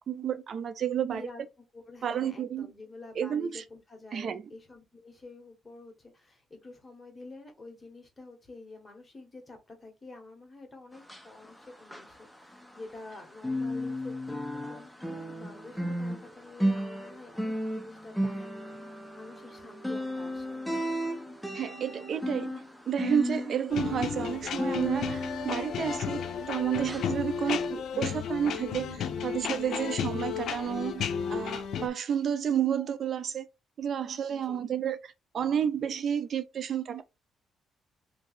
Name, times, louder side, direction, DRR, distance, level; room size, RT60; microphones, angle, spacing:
voice 1, 0.1-1.2 2.0-2.7 3.2-3.6 4.1-4.4 21.5-26.2 26.5-33.5 33.8-37.0, right 8 dB, 55° right, 0.4 m, -31 dB
voice 2, 0.9-1.4 1.7-14.4 14.7-20.6 34.3-34.7, left 2 dB, 20° left, 1.5 m, -48 dB
sound 1, 11.0-13.1 13.4-26.5 26.9-27.1 27.6-27.7, equal, 5° left, 0.6 m, -34 dB
sound 2, 23.7-31.9, left 7 dB, 70° left, 0.5 m, -33 dB
2.9 x 2.6 x 4.1 m
cardioid pair, 90°, 0 cm